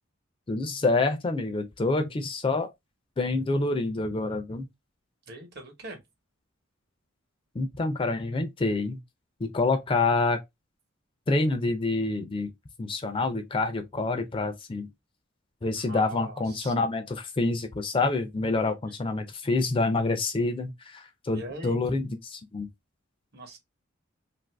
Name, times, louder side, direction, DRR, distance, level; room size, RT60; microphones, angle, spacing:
voice 1, 0.5-2.7 3.2-4.7 7.5-9.0 9.4-10.4 11.3-12.5 12.8-14.9 15.6-22.7, left 3 dB, 25° left, 0.4 m, -27 dB
voice 2, 5.3-6.0 15.7-16.7 21.3-21.8 23.3-23.6, right 1 dB, 55° right, 1.0 m, -41 dB
2.6 x 2.5 x 3.2 m
head